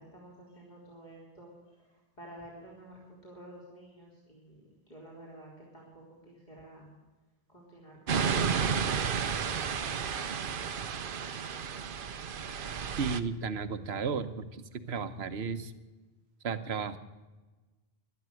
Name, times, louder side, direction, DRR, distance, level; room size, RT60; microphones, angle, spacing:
voice 1, 0.0-4.6 4.9-6.9 7.5-8.2 8.5-10.6, right 1 dB, 45° left, -5 dB, 3.7 m, -51 dB
sound 1, 8.1-13.2, right 6 dB, 60° right, 0.9 m, -32 dB
voice 2, 13.0-15.7 16.4-17.0, right 5 dB, 75° right, 11 dB, 1.2 m, -34 dB
12.5 x 12.0 x 7.6 m, 1.2 s
omnidirectional pair, 1.1 m